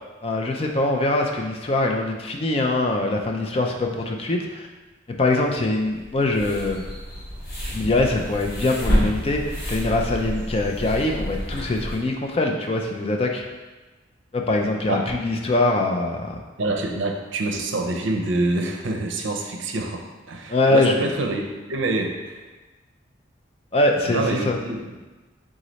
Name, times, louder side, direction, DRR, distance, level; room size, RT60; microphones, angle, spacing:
voice 1, 0.2-4.7 5.2-6.8 7.7-13.4 14.3-16.4 20.5-21.1 23.7-24.6, left 2 dB, 30° left, 2 dB, 0.3 m, -23 dB
sound 1, 5.8-12.0, equal, 55° left, 1.3 m, -29 dB
voice 2, 16.6-21.4 21.7-22.4 24.0-24.8, right 2 dB, 75° right, 3 dB, 0.5 m, -26 dB
3.7 x 3.1 x 4.0 m, 1.2 s
head